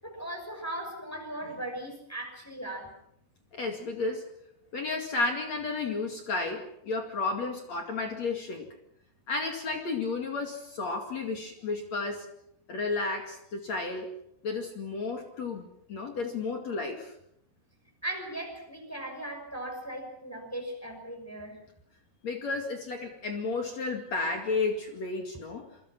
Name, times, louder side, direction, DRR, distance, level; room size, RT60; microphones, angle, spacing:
voice 1, 0.0-3.0 18.0-21.6, right 1 dB, 5° left, 2 dB, 5.4 m, -38 dB
voice 2, 3.5-4.3 4.7-8.7 9.3-12.3 12.7-14.1 14.4-17.1 22.2-25.7, left 3 dB, 45° left, 4 dB, 2.6 m, -32 dB
27.0 x 24.0 x 6.0 m, 0.73 s
omnidirectional pair, 5.9 m